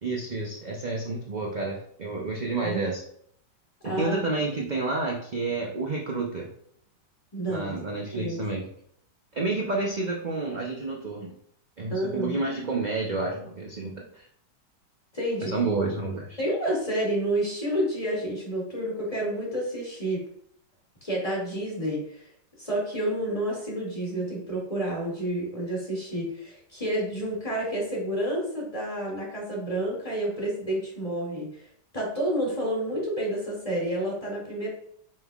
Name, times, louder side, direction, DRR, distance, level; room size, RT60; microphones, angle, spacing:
voice 1, 0.0-3.0 3.8-6.5 7.5-8.6 9.3-11.3 11.8-14.3 15.4-16.4, right 3 dB, 40° right, -1 dB, 0.6 m, -30 dB
voice 2, 3.8-4.2 7.3-7.7 8.1-8.5 11.9-12.4 15.1-15.5 16.4-20.3 21.0-22.2 22.6-31.5 31.9-34.7, right 1 dB, 20° left, -4 dB, 2.5 m, -29 dB
7.5 x 5.4 x 2.4 m, 0.66 s
omnidirectional pair, 1.8 m